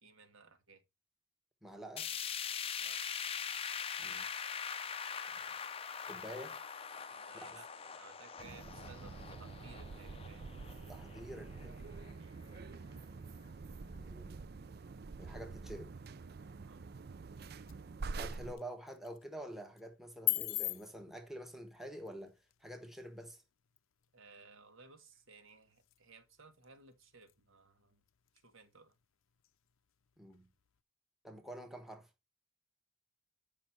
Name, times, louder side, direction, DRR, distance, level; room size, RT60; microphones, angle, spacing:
voice 1, 0.0-0.8 2.8-3.0 7.1-10.5 12.2-12.4 16.6-16.8 24.1-28.0 28.4-28.9, right 4 dB, 70° right, 1.8 m, -59 dB
voice 2, 1.6-2.1 4.0-4.3 6.1-6.6 7.3-7.6 10.9-11.9 13.8-14.4 15.2-16.0 18.2-23.4 30.2-30.5 31.2-32.1, equal, ahead, 1.2 m, -48 dB
sound 1, 2.0-12.1 12.5-12.6 13.0-13.1 14.0-14.1, left 7 dB, 25° left, 0.5 m, -42 dB
sound 2, 8.4-18.5, right 4 dB, 50° right, 0.5 m, -47 dB
sound 3, 16.8-30.8, left 19 dB, 75° left, 0.6 m, -46 dB
9.2 x 5.5 x 4.4 m
head